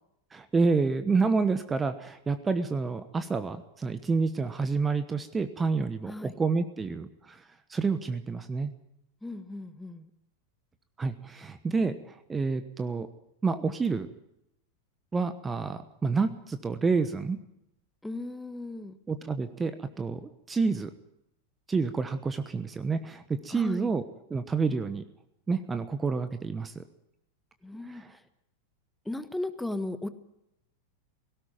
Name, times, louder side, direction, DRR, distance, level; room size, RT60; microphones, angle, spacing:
voice 1, 0.3-7.4 7.7-8.7 11.0-13.1 13.4-14.1 15.1-17.4 19.1-20.9 21.7-24.0 24.3-25.0 25.5-26.8 27.9-28.2, right 4 dB, 15° right, 11 dB, 1.1 m, -29 dB
voice 2, 9.2-10.1 18.0-19.0 23.5-23.9 27.6-28.2 29.0-30.1, left 2 dB, 5° left, 11 dB, 1.4 m, -36 dB
18.0 x 17.5 x 9.1 m, 0.80 s
figure-of-eight pair, 90°, 0 cm